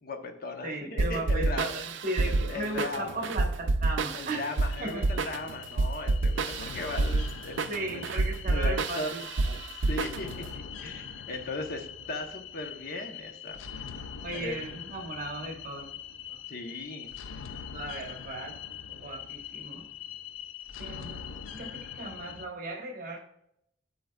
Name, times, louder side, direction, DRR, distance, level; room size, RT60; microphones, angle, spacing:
voice 1, 0.0-1.7 2.2-3.3 4.1-8.1 8.5-9.1 9.9-13.6 14.3-14.6 16.5-17.1, left 2 dB, 55° left, 4 dB, 0.9 m, -38 dB
voice 2, 0.6-5.2 7.7-9.6 14.2-15.9 16.3-16.4 17.7-18.6 19.0-19.8 20.8-23.2, right 2 dB, 45° right, 0 dB, 1.2 m, -37 dB
sound 1, 1.0-10.5, right 3 dB, 70° right, 0.4 m, -29 dB
sound 2, 4.7-22.5, left 8 dB, 90° left, 0.4 m, -43 dB
11.5 x 3.8 x 2.3 m, 0.75 s
head